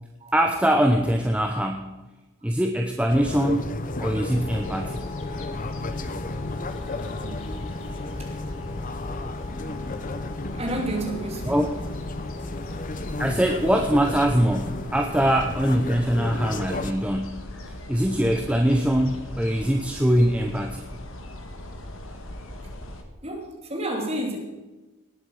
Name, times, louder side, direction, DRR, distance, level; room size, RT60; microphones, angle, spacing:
voice 1, 0.3-1.9 2.4-3.7 4.0-5.0 11.5-11.7 13.2-17.4 17.9-20.9, equal, 5° right, 3 dB, 0.8 m, -22 dB
sound 1, 3.1-16.9, left 2 dB, 35° left, 0.8 m, -33 dB
sound 2, 4.3-23.0, left 1 dB, 60° left, 1.8 m, -39 dB
voice 2, 10.5-11.6 12.3-12.4 23.2-24.4, right 1 dB, 30° right, 1 dB, 2.7 m, -31 dB
18.5 x 8.0 x 6.4 m, 1.1 s
head